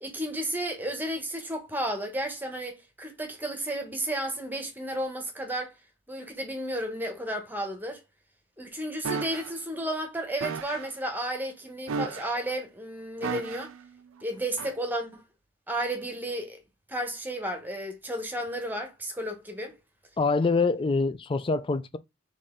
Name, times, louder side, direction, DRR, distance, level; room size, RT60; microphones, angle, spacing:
voice 1, 0.0-5.7 6.1-8.0 8.6-13.7 14.2-15.2 15.7-16.6 16.9-19.8, right 1 dB, 10° right, 1.0 m, -33 dB
sound 1, 9.0-9.5 10.4-10.9 11.9-12.5 13.2-13.8 14.6-14.8, right 5 dB, 70° right, 0.5 m, -34 dB
voice 2, 20.2-22.0, left 3 dB, 25° left, 0.3 m, -25 dB
4.2 x 3.2 x 3.7 m
head